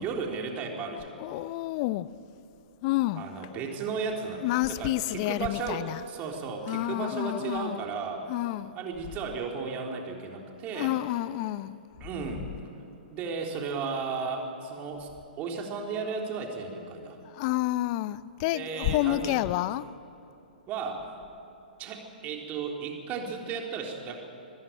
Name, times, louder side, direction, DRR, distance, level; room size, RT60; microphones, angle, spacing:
voice 1, 0.0-1.1 3.1-8.2 8.8-11.0 12.0-12.5 13.1-15.1 15.4-17.2 18.5-19.4 20.7-21.1 21.8-24.2, right 5 dB, 30° right, 3.6 m, -34 dB
voice 2, 1.2-2.1 2.8-3.3 4.4-6.0 6.7-7.8 8.3-8.7 10.7-11.8 17.2-19.9, left 16 dB, 40° left, 0.6 m, -29 dB
25.5 x 15.0 x 8.9 m
hypercardioid pair, 120°, 5 cm